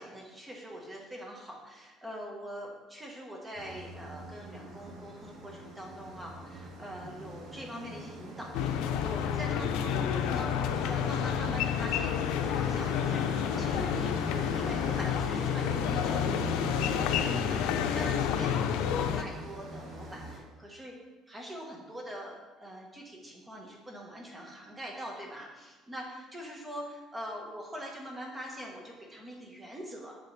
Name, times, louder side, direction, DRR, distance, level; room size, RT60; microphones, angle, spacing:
voice 1, 0.0-21.0 21.3-30.2, equal, 10° right, -1 dB, 1.3 m, -43 dB
sound 1, 3.5-20.4, right 1 dB, 85° right, 2.4 m, -42 dB
sound 2, 8.5-19.2, left 9 dB, 85° left, 0.5 m, -29 dB
7.6 x 6.8 x 3.3 m, 1.2 s
cardioid pair, 160°, 0 cm